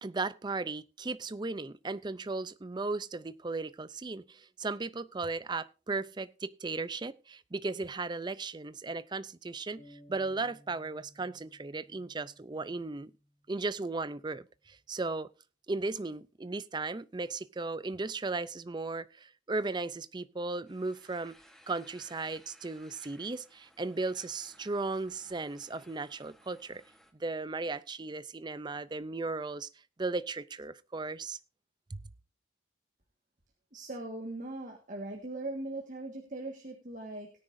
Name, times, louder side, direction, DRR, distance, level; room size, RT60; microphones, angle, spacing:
voice 1, 0.0-13.1 13.5-15.3 15.7-21.4 21.7-26.8 27.2-29.7 30.0-31.4 31.9-32.0, right 3 dB, 20° right, 0.4 m, -36 dB
sound 1, 9.8-13.5, equal, 75° left, 3.6 m, -59 dB
sound 2, 20.7-27.1, equal, ahead, 1.2 m, -60 dB
voice 2, 33.7-37.3, right 2 dB, 40° right, 1.7 m, -40 dB
18.0 x 9.7 x 2.6 m
head